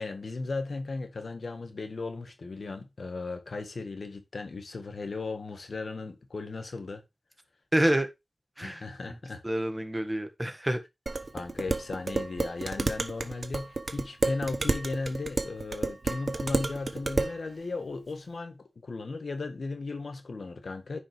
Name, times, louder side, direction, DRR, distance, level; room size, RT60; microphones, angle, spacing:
voice 1, 0.0-7.0 8.6-9.4 11.3-21.0, left 3 dB, 75° left, 1.6 m, -36 dB
voice 2, 7.7-8.1 8.6-9.2 9.4-10.8, right 1 dB, 15° right, 1.6 m, -28 dB
Dishes pots and pans, 11.1-17.4, right 3 dB, 55° right, 1.0 m, -31 dB
9.7 x 5.5 x 3.4 m
wide cardioid pair, 65°, 0 cm